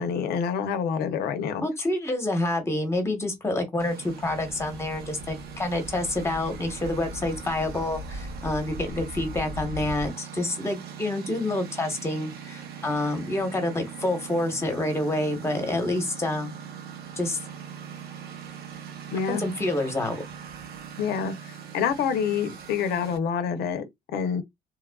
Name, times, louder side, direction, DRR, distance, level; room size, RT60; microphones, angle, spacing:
voice 1, 0.0-1.6 19.1-19.4 21.0-23.8 24.1-24.4, left 7 dB, 70° left, 0.7 m, -27 dB
voice 2, 1.6-16.5 17.2-17.4 19.4-20.2, left 2 dB, 15° left, 1.0 m, -28 dB
Engine, 3.8-23.2, right 8 dB, 70° right, 0.7 m, -41 dB
sound 1, 4.2-10.1, left 1 dB, 85° right, 1.4 m, -39 dB
3.1 x 2.3 x 2.2 m
cardioid pair, 110°, 17 cm